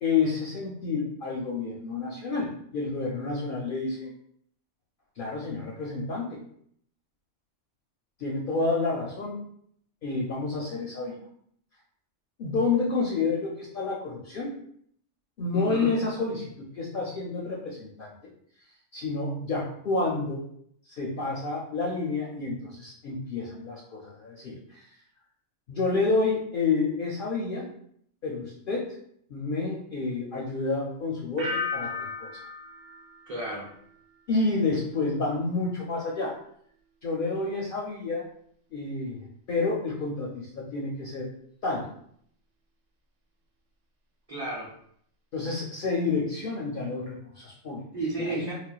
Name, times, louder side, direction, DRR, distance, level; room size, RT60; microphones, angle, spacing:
voice 1, 0.0-4.1 5.2-6.4 8.2-9.4 10.0-11.2 12.4-14.5 15.4-18.1 18.9-20.4 20.9-24.9 25.7-27.7 28.2-29.0 29.3-32.4 34.3-36.3 37.0-38.2 38.7-41.3 41.6-41.9 45.3-47.8 48.3-48.5, left 3 dB, 60° left, -3 dB, 0.6 m, -29 dB
voice 2, 15.5-15.9 33.3-33.7 44.3-44.7 47.9-48.5, right 2 dB, 35° right, -6 dB, 0.8 m, -32 dB
sound 1, 31.4-34.2 34.5-35.0, left 4 dB, 75° right, 1.0 m, -36 dB
4.0 x 2.1 x 2.3 m, 0.66 s
omnidirectional pair, 1.3 m